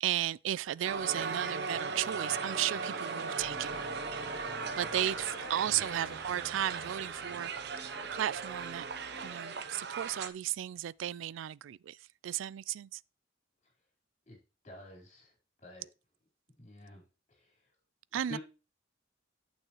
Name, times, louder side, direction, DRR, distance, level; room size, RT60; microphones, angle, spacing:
voice 1, 0.0-3.8 4.8-7.5 8.1-8.9 9.2-12.0 12.2-13.0 18.1-18.4, right 11 dB, 85° right, 0.3 m, -34 dB
Crowd, 0.8-10.3, right 5 dB, 60° right, 0.8 m, -38 dB
sound 1, 0.9-6.2, left 4 dB, 90° left, 1.0 m, -49 dB
sound 2, 3.4-9.4, equal, ahead, 4.7 m, -50 dB
voice 2, 14.6-15.3 15.6-15.8 16.6-17.0 17.4-17.5 18.3-18.4, left 1 dB, 35° left, 4.3 m, -48 dB
8.8 x 7.0 x 3.0 m
head